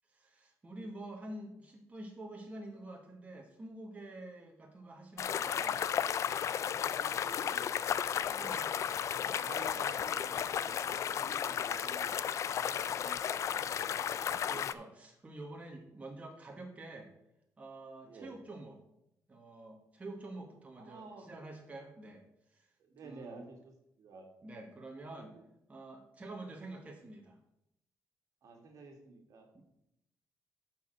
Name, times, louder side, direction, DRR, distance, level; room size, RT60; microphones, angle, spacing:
voice 1, 0.1-5.9 8.1-8.7 9.2-9.4 14.5-17.1 17.6-18.7 19.3-22.2 22.5-22.7 23.0-23.4 24.4-25.3 25.7-27.4 29.5-29.6, right 2 dB, 20° right, 1 dB, 1.3 m, -47 dB
sound 1, 5.2-14.7, left 8 dB, 55° left, 0.4 m, -34 dB
voice 2, 6.7-8.7 9.4-10.8 11.0-12.1 12.5-14.0 15.8-16.0 18.0-18.4 20.8-21.3 22.8-24.3 25.2-25.4 28.4-29.5, right 4 dB, 60° right, 3 dB, 1.8 m, -52 dB
8.1 x 4.7 x 6.3 m, 0.81 s
cardioid pair, 115°, 6 cm